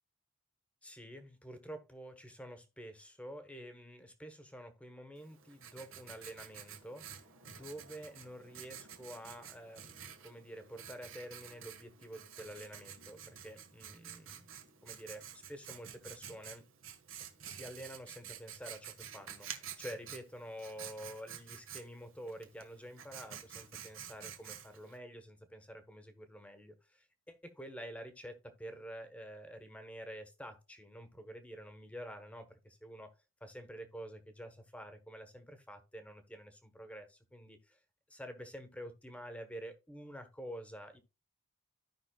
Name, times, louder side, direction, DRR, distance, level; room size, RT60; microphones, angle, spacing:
voice 1, 0.8-16.7 17.4-33.1 33.4-37.8 38.1-41.0, equal, 5° left, 8 dB, 1.1 m, -49 dB
Writing, 5.2-25.0, right 9 dB, 85° right, 1.5 m, -50 dB
15.5 x 5.4 x 2.3 m, 0.29 s
head